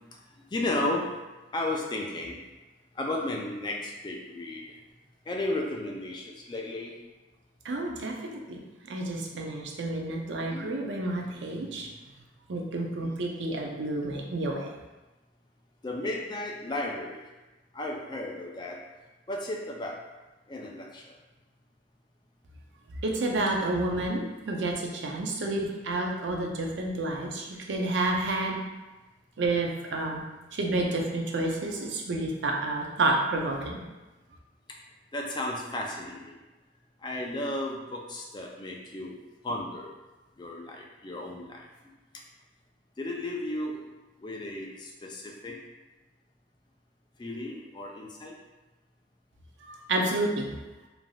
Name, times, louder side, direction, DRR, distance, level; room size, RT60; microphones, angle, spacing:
voice 1, 0.5-1.1 1.5-2.4 3.0-4.8 5.3-6.9 9.3-9.5 10.5-10.7 11.8-11.9 13.0-13.1 15.8-17.2 17.7-18.8 19.3-20.0 20.5-21.1 35.1-36.4 37.0-39.1 39.4-39.9 40.4-41.6 43.0-43.8 44.2-45.6 47.2-48.3, left 1 dB, 25° left, 0 dB, 0.3 m, -34 dB
voice 2, 7.6-8.6 8.9-11.9 12.5-14.7 23.0-28.6 29.4-30.2 30.5-33.8 49.7-50.5, right 2 dB, 75° right, 1 dB, 0.5 m, -30 dB
3.3 x 2.5 x 2.3 m, 1.1 s
head